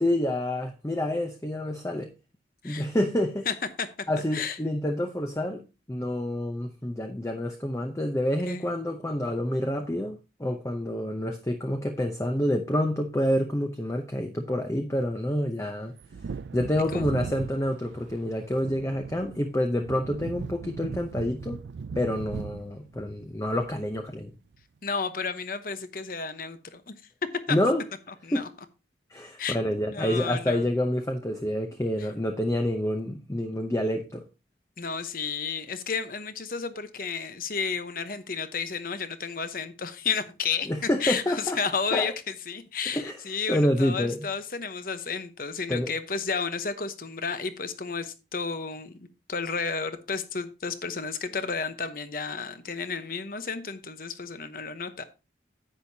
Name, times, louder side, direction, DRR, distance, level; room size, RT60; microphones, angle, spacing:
voice 1, 0.0-2.1 2.6-3.5 4.1-5.6 5.9-15.9 16.5-21.6 22.0-24.3 27.5-27.8 28.3-28.4 29.1-34.2 40.7-41.6 41.9-42.1 42.9-43.2 43.5-44.3 45.7-45.9, left 1 dB, 15° left, 0.7 m, -28 dB
voice 2, 3.5-3.9 4.3-4.6 8.5-8.8 16.9-17.0 24.8-27.0 27.5-27.6 28.2-28.5 29.4-29.6 29.8-30.7 32.0-32.1 34.8-55.0, left 5 dB, 50° left, 0.9 m, -32 dB
Wind / Thunder, 16.0-24.3 24.5-24.6, right 5 dB, 80° right, 0.4 m, -39 dB
10.0 x 8.3 x 2.8 m
head